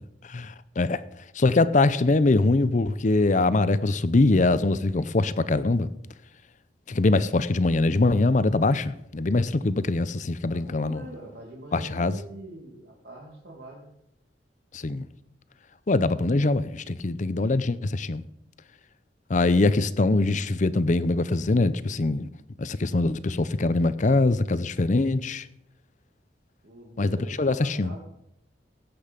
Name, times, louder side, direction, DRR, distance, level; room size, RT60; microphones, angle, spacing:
voice 1, 0.3-1.0 1.3-5.9 6.9-11.0 11.7-12.2 14.7-15.1 15.9-18.2 19.3-22.3 22.6-25.5 27.0-27.9, left 2 dB, 45° left, 0.6 m, -23 dB
voice 2, 10.5-13.9 26.6-28.0, right 1 dB, 75° right, 2.3 m, -43 dB
16.5 x 7.8 x 5.2 m
head